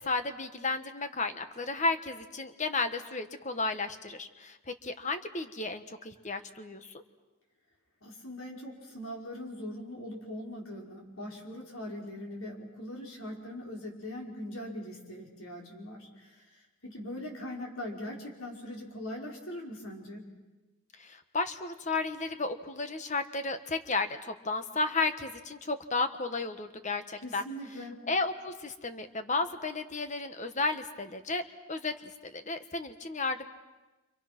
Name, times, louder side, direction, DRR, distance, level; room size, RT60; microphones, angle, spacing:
voice 1, 0.0-7.0 21.0-27.4 28.1-31.4 31.7-33.5, left 3 dB, 35° left, 9 dB, 1.4 m, -33 dB
voice 2, 8.0-20.3 27.2-28.0, left 1 dB, 80° left, -1 dB, 5.5 m, -41 dB
29.5 x 26.5 x 6.1 m, 1.1 s
head